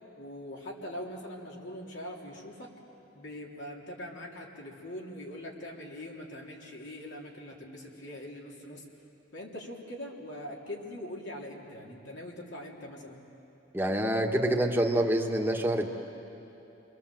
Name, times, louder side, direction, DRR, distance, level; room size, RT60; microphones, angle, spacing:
voice 1, 0.2-2.7 3.1-8.8 9.3-13.2, left 1 dB, 70° left, -2 dB, 3.3 m, -42 dB
voice 2, 13.7-15.9, right 1 dB, 10° right, 1 dB, 1.6 m, -26 dB
29.5 x 22.0 x 7.7 m, 2.9 s
head